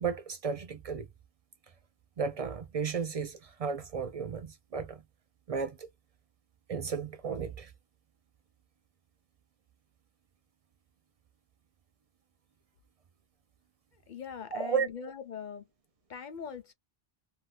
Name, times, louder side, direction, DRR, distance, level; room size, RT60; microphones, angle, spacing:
voice 1, 0.0-1.1 2.2-5.0 5.5-5.9 6.7-7.7 14.5-14.9, right 6 dB, 60° right, 0.3 m, -33 dB
voice 2, 14.1-15.7 16.1-16.7, left 7 dB, 55° left, 0.6 m, -42 dB
2.7 x 2.2 x 3.2 m
omnidirectional pair, 1.1 m